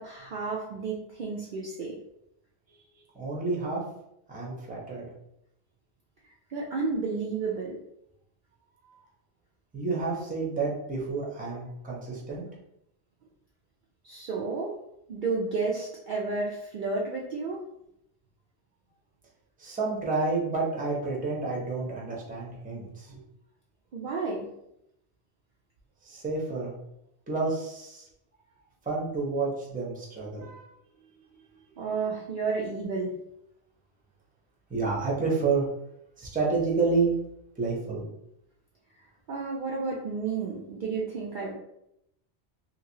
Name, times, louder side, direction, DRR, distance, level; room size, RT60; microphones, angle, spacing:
voice 1, 0.0-2.0 6.5-7.8 14.0-14.8 15.1-17.6 23.9-24.5 31.8-33.1 39.3-41.5, right 4 dB, 60° right, -3 dB, 0.6 m, -31 dB
voice 2, 3.1-3.8 4.3-5.1 8.8-9.0 9.7-12.4 19.6-23.2 26.0-26.7 27.3-28.1 28.8-30.6 31.7-31.8 34.7-35.7 36.2-37.1 37.6-38.0, right 4 dB, 10° right, -3 dB, 0.6 m, -29 dB
2.9 x 2.8 x 2.7 m, 0.79 s
omnidirectional pair, 1.2 m